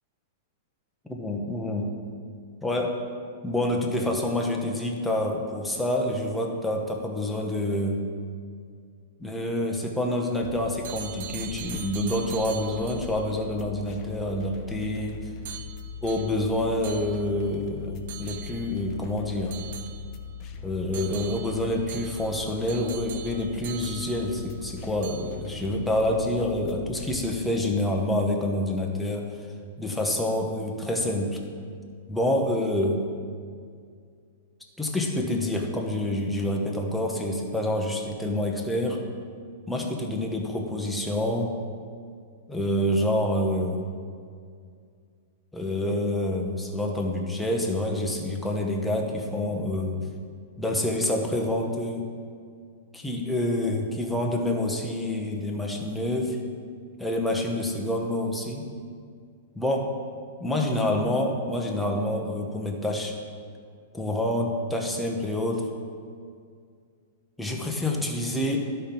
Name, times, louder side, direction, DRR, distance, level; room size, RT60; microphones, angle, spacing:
voice 1, 1.1-1.9 2.6-3.0 3.4-8.0 9.2-15.2 16.0-19.6 20.6-29.3 29.8-31.4 32.1-33.0 34.8-39.0 39.7-41.6 42.5-43.9 45.5-50.0 50.6-52.1 52.9-56.4 57.0-58.7 59.6-59.9 60.4-63.2 63.9-65.7 67.4-68.6, left 1 dB, 5° left, 0 dB, 0.9 m, -27 dB
sound 1, 10.4-27.3, left 6 dB, 30° left, 0.6 m, -41 dB
sound 2, 10.8-13.2 15.5-17.6 18.1-18.9 19.5-20.4 20.9-24.7 25.0-25.6, right 10 dB, 60° right, 0.5 m, -42 dB
11.5 x 4.4 x 5.3 m, 2.2 s
supercardioid pair, 155°, 0 cm